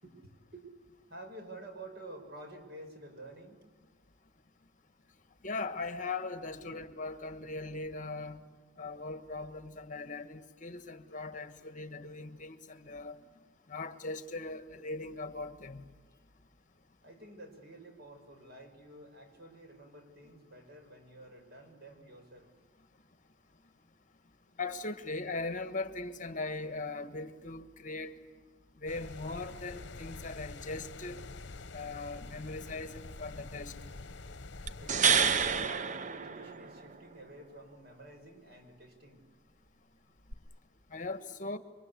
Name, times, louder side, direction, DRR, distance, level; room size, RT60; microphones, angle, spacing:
voice 1, 0.0-0.7 1.1-3.7 6.6-6.8 17.0-22.6 34.8-39.3, right 2 dB, 60° right, 6.1 m, -50 dB
voice 2, 5.4-8.4 8.8-13.2 13.7-15.9 24.6-28.1 28.8-31.2 31.7-33.7 40.9-41.6, left 3 dB, 45° left, 1.5 m, -39 dB
sound 1, 28.9-35.7, left 3 dB, 65° left, 1.0 m, -46 dB
sound 2, 34.7-36.9 40.3-40.4, right 6 dB, 40° right, 0.7 m, -28 dB
29.5 x 24.5 x 8.4 m
head